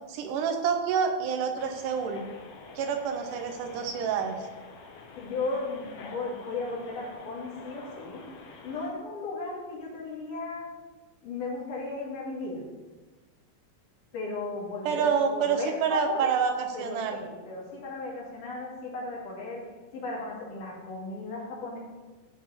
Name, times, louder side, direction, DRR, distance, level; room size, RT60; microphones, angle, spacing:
voice 1, 0.1-2.2 2.7-4.4 14.9-17.2, right 6 dB, 90° right, 6 dB, 2.5 m, -27 dB
sound 1, 1.6-8.9, left 4 dB, 65° left, 2.0 m, -47 dB
voice 2, 5.2-8.2 8.6-10.7 11.2-12.6 14.1-16.3 16.7-19.6 19.9-21.8, left 3 dB, 85° left, -4 dB, 4.0 m, -35 dB
12.5 x 4.8 x 5.2 m, 1.3 s
omnidirectional pair, 3.6 m